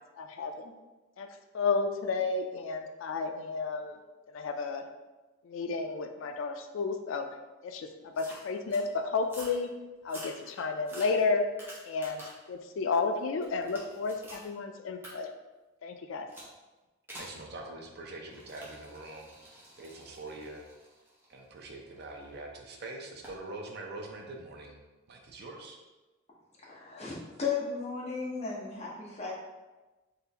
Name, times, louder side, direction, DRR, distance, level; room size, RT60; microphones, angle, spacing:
voice 1, 0.2-0.7 1.2-1.3 1.5-4.0 4.3-4.8 5.4-7.3 7.6-7.9 8.2-9.7 10.0-11.4 11.8-12.2 12.5-15.3 15.8-16.3, left 4 dB, 75° left, 6 dB, 0.4 m, -32 dB
sound 1, 8.2-8.9 9.2-9.6 10.0-12.5 12.9-14.5 15.0-15.1 16.3-16.5 17.1-17.4 18.3-22.2 23.2-23.4, right 1 dB, 10° right, 0.9 m, -49 dB
voice 2, 17.2-20.6 21.3-24.8 25.1-25.8, right 2 dB, 55° right, 2 dB, 0.6 m, -44 dB
voice 3, 26.7-29.3, left 5 dB, 35° left, -4 dB, 0.8 m, -35 dB
3.8 x 3.2 x 2.9 m, 1.2 s
head